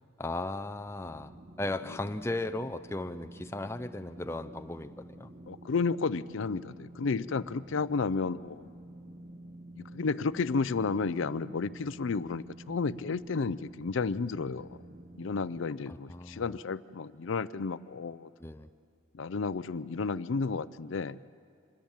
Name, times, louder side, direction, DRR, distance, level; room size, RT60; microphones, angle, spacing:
voice 1, 0.2-5.3 15.9-16.4 18.4-18.7, left 2 dB, 10° left, 8 dB, 0.5 m, -36 dB
sound 1, 1.0-15.6, right 1 dB, 30° right, 1.0 m, -50 dB
voice 2, 5.5-8.7 9.8-14.8 15.2-18.3 19.1-21.2, left 4 dB, 70° left, 16 dB, 0.5 m, -32 dB
25.0 x 20.5 x 7.3 m, 2.5 s
head